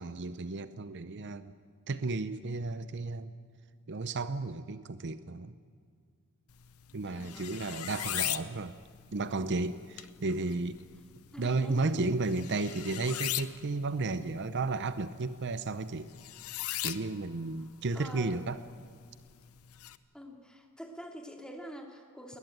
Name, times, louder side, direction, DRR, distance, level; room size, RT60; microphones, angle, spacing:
voice 1, 0.0-1.5 1.9-3.3 3.9-5.5 6.9-8.7 9.1-10.8 11.4-16.1 16.8-18.6, right 3 dB, 55° right, 12 dB, 0.7 m, -33 dB
sound 1, 6.5-20.0, left 14 dB, 85° left, 0.8 m, -41 dB
voice 2, 7.1-8.0 11.3-12.1 17.9-18.5 20.1-22.4, equal, 5° left, 2 dB, 2.6 m, -46 dB
20.5 x 20.0 x 9.2 m, 2.1 s
head